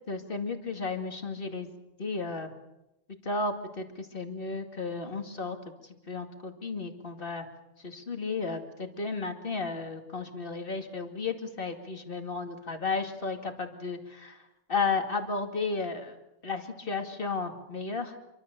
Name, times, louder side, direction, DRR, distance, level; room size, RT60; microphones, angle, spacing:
voice 1, 0.1-1.7 2.0-2.5 3.3-5.6 6.1-7.5 7.8-14.4 14.7-16.1 16.4-18.2, left 4 dB, 45° left, 4 dB, 2.5 m, -33 dB
27.0 x 24.0 x 6.8 m, 0.93 s
omnidirectional pair, 1.3 m